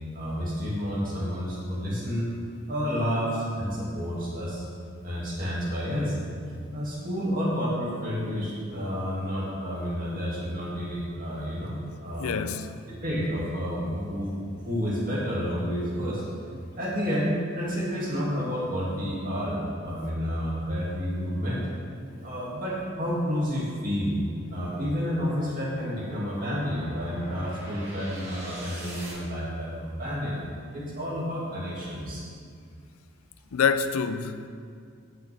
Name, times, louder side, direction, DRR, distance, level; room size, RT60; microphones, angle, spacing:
voice 1, 0.1-2.3 2.7-4.6 5.0-6.2 6.7-12.4 12.9-14.4 14.6-16.2 16.7-21.6 22.2-24.2 24.5-30.4 30.7-32.2, equal, 40° right, 2.4 m, -30 dB
voice 2, 12.2-12.7 33.5-34.5, left 6 dB, 90° left, 0.5 m, -26 dB
sound 1, 17.9-29.1, right 1 dB, 60° right, 2.4 m, -48 dB
14.5 x 6.0 x 3.5 m
head